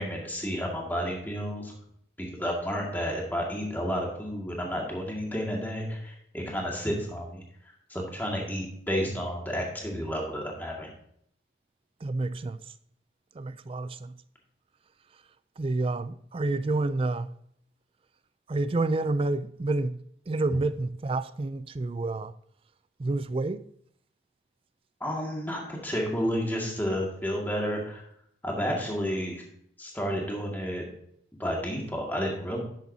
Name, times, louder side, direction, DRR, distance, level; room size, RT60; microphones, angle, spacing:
voice 1, 0.0-1.7 2.2-7.4 7.9-10.9 25.0-28.0 28.4-29.4 29.8-30.8 31.4-32.6, equal, 10° left, 2.0 m, -31 dB
voice 2, 12.0-12.6 13.4-14.1 15.6-17.3 18.5-20.0 20.3-22.3 23.0-23.6, right 2 dB, 30° right, 0.3 m, -29 dB
11.0 x 8.1 x 2.7 m
head